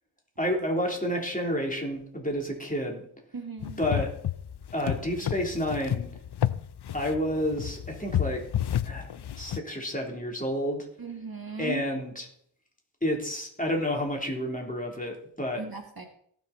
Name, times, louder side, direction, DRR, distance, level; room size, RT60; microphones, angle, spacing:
voice 1, 0.4-3.0 3.6-4.1 4.7-6.1 6.9-8.4 8.8-10.9 11.6-12.3 13.0-15.6, equal, 15° left, 0 dB, 3.5 m, -30 dB
voice 2, 3.3-3.8 11.0-11.9 15.6-16.1, right 4 dB, 45° right, 4 dB, 1.8 m, -37 dB
sound 1, 3.6-9.6, left 10 dB, 55° left, 0.5 m, -31 dB
18.0 x 6.2 x 4.3 m, 0.65 s
wide cardioid pair, 45°, 48 cm